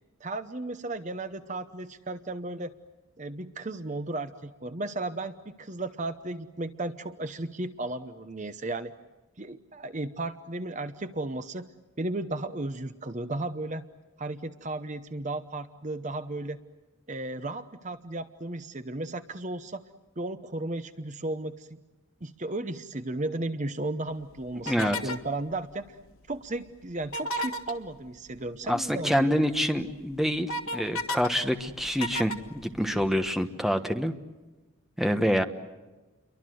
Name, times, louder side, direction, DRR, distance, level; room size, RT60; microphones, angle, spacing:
voice 1, 0.2-2.7 3.2-8.9 9.4-11.7 12.0-13.9 14.2-16.6 17.1-19.8 20.2-21.8 22.2-26.0 26.3-29.3, right 2 dB, 35° right, 10 dB, 0.9 m, -34 dB
sound 1, 24.6-25.3 27.0-27.8 29.4-29.5 29.9-31.3 31.6-33.2, equal, 80° left, 1.7 m, -33 dB
voice 2, 24.6-25.0 28.7-34.1 35.0-35.4, equal, ahead, 7 dB, 1.2 m, -26 dB
29.5 x 23.5 x 7.8 m, 1.2 s
head